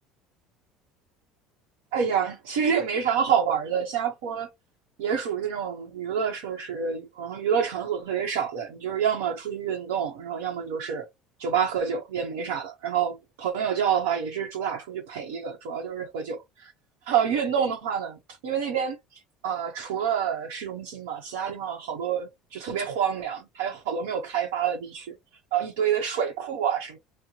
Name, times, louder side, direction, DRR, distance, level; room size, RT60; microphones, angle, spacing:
voice 1, 1.9-4.5 5.0-11.1 11.4-16.7 17.1-19.0 19.4-25.1 25.5-27.0, right 7 dB, 85° right, 0.8 m, -28 dB
2.9 x 2.0 x 4.0 m
supercardioid pair, 85°, 0 cm